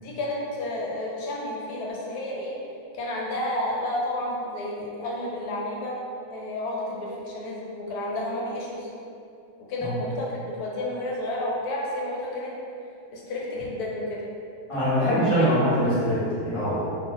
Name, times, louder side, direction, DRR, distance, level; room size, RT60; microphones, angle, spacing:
voice 1, 0.0-2.6 3.0-6.0 6.3-8.9 9.7-12.5 13.1-14.2 15.0-15.5, left 1 dB, 70° left, -4 dB, 1.0 m, -31 dB
voice 2, 14.7-16.9, equal, 40° left, -13 dB, 0.4 m, -23 dB
2.8 x 2.0 x 3.8 m, 2.6 s
omnidirectional pair, 1.8 m